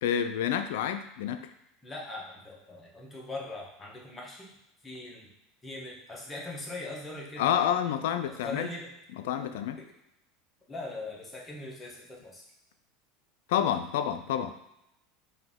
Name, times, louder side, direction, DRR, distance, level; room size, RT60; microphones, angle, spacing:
voice 1, 0.0-1.5 7.4-8.7 9.2-9.8 13.5-14.5, left 9 dB, 80° left, 9 dB, 0.4 m, -28 dB
voice 2, 1.8-4.5 4.8-5.3 5.6-7.5 8.2-8.9 9.4-9.5 9.8-9.9 10.7-12.5, left 2 dB, 15° left, -3 dB, 1.2 m, -41 dB
4.8 x 2.8 x 3.6 m, 0.84 s
supercardioid pair, 115°, 0 cm